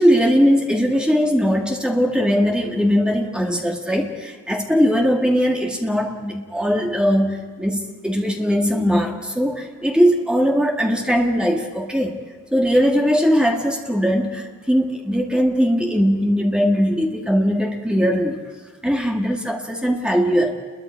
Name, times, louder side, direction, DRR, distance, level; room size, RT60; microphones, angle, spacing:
voice 1, 0.0-12.2 12.5-18.4 18.8-20.5, equal, 5° right, 0 dB, 2.3 m, -20 dB
29.5 x 22.0 x 4.7 m, 1.5 s
head